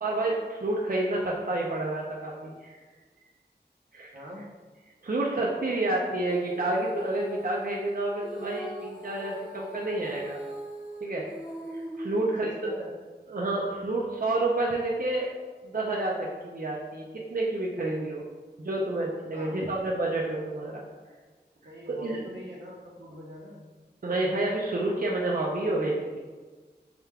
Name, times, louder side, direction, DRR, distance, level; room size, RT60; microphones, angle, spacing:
voice 1, 0.0-2.7 3.9-4.1 5.0-10.4 11.0-11.2 11.7-12.7 13.3-15.3 15.6-17.1 17.3-18.2 18.6-20.8 21.9-22.2 24.0-26.2, right 2 dB, 55° right, -3 dB, 0.5 m, -29 dB
Female singing, 6.2-12.7, right 1 dB, 5° right, 0.8 m, -41 dB
voice 2, 11.9-12.9 13.6-13.9 19.3-19.8 21.6-23.6, equal, 85° right, -5 dB, 1.0 m, -44 dB
4.9 x 3.3 x 2.3 m, 1.4 s
wide cardioid pair, 50°, 18 cm